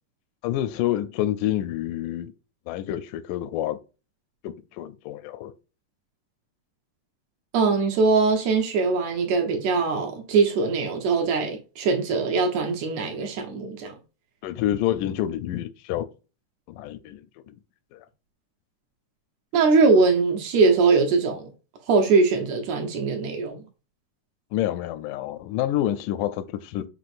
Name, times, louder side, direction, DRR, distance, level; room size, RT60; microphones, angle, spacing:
voice 1, 0.4-2.3 2.7-3.8 4.4-5.5 14.4-16.1 16.7-17.2 17.5-17.6 17.9-18.1 24.5-26.9, left 12 dB, 85° left, 2.1 m, -28 dB
voice 2, 7.5-13.9 19.5-21.5 21.9-23.6, right 4 dB, 70° right, 1.9 m, -21 dB
6.0 x 3.0 x 2.4 m
omnidirectional pair, 3.6 m